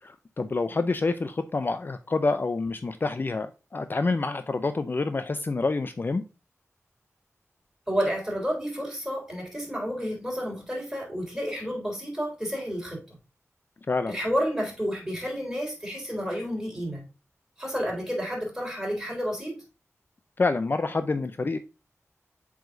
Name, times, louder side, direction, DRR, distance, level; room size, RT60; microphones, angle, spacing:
voice 1, 0.0-6.2 13.9-14.2 20.4-21.6, left 3 dB, 40° left, 0.4 m, -27 dB
voice 2, 7.9-13.0 14.1-17.0 17.6-19.6, equal, 10° right, 3.7 m, -30 dB
7.8 x 4.9 x 2.6 m
wide cardioid pair, 95°, 5 cm